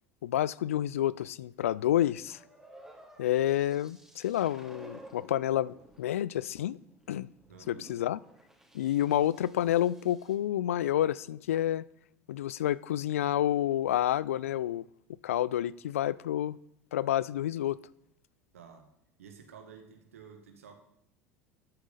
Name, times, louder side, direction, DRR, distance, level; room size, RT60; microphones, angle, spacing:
voice 1, 0.2-2.4 3.2-6.8 7.1-7.3 7.7-8.2 8.7-11.8 12.3-14.8 15.2-16.6 16.9-17.8, left 12 dB, 75° left, 0.4 m, -29 dB
sound 1, 2.3-10.4, right 1 dB, 5° right, 2.7 m, -55 dB
voice 2, 7.5-8.0 9.0-9.4 18.5-18.9 19.2-20.8, right 7 dB, 75° right, 1.8 m, -52 dB
13.5 x 8.4 x 4.0 m
figure-of-eight pair, 75°, 7 cm